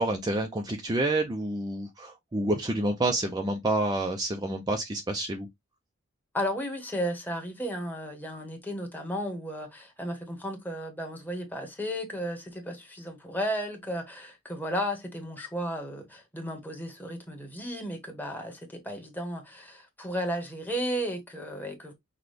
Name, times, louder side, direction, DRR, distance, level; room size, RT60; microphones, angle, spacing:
voice 1, 0.0-5.5, right 2 dB, 20° right, 0.5 m, -28 dB
voice 2, 6.3-21.9, equal, 10° left, 1.1 m, -34 dB
5.9 x 2.2 x 3.3 m
head